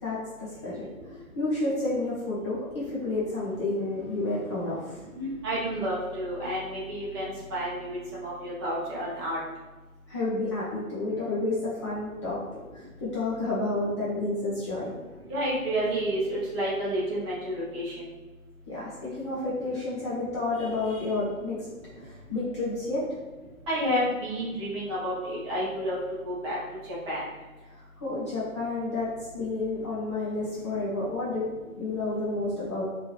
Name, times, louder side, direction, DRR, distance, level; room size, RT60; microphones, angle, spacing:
voice 1, 0.0-5.0 10.1-12.4 12.7-14.9 18.7-21.7 22.0-23.1 27.7-31.5 31.8-32.8, left 2 dB, 20° left, -9 dB, 0.7 m, -30 dB
voice 2, 5.2-9.4 15.3-18.1 23.7-26.0 26.2-26.6 27.1-27.2, equal, 20° right, -7 dB, 1.0 m, -30 dB
4.5 x 2.8 x 3.1 m, 1.2 s
figure-of-eight pair, 130°, 43 cm